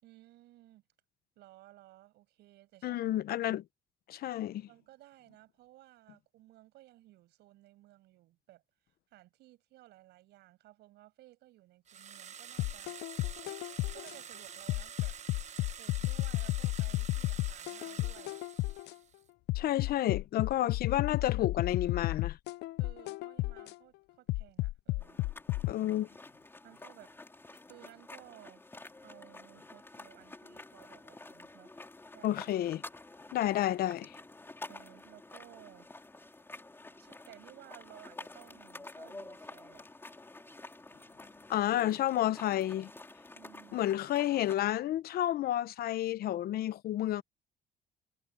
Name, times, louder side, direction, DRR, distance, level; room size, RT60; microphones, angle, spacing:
voice 1, 0.0-0.8 1.4-3.1 4.6-8.6 9.1-13.0 13.9-15.3 15.8-18.4 22.8-25.2 26.6-27.1 27.5-28.6 29.0-31.7 32.1-32.4 34.7-35.9 36.6-40.0 43.3-43.9, right 16 dB, 80° right, 7.7 m, -57 dB
voice 2, 2.8-3.6 4.1-4.7 19.5-22.4 25.7-26.1 32.2-32.8 33.3-34.2 41.5-42.9 43.7-47.2, left 13 dB, 65° left, 0.9 m, -31 dB
sound 1, 11.9-19.2, right 8 dB, 45° right, 1.2 m, -48 dB
sound 2, 12.6-14.1 14.7-18.9 19.5-23.7 24.3-25.7, left 19 dB, 80° left, 0.5 m, -33 dB
sound 3, 25.0-44.6, left 2 dB, 15° left, 3.8 m, -50 dB
cardioid pair, 110°, 17 cm